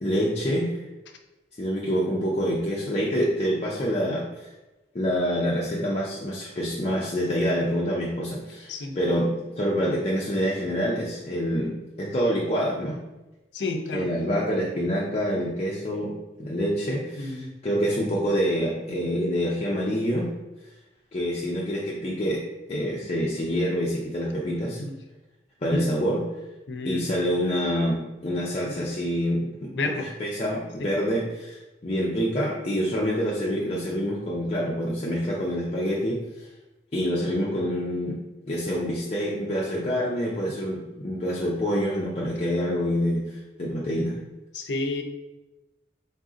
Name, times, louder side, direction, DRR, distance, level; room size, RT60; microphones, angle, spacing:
voice 1, 0.0-0.8 1.6-4.5 4.9-13.0 13.9-16.1 16.4-20.3 21.1-22.4 22.7-24.8 25.6-26.2 26.8-36.2 36.9-38.2 38.5-44.2, equal, 35° left, -4 dB, 0.5 m, -26 dB
voice 2, 13.5-14.1 17.2-17.5 24.8-24.9 25.7-25.8 26.7-27.1 28.7-28.9 29.6-30.1 30.8-30.9 44.5-45.0, left 2 dB, 85° left, 4 dB, 0.6 m, -30 dB
4.0 x 2.6 x 3.7 m, 1.0 s
head